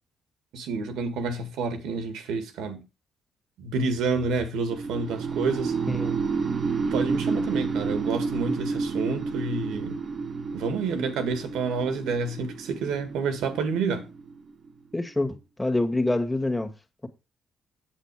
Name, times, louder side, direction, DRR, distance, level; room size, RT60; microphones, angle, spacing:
voice 1, 0.5-2.8 3.6-5.7 6.9-10.0 10.5-14.1, right 4 dB, 90° right, 1.9 m, -29 dB
sound 1, 4.7-14.7, right 4 dB, 45° right, 1.2 m, -30 dB
voice 2, 5.9-6.2 14.9-16.7, left 2 dB, 10° left, 1.8 m, -26 dB
8.3 x 7.8 x 4.8 m
cardioid pair, 90°, 0 cm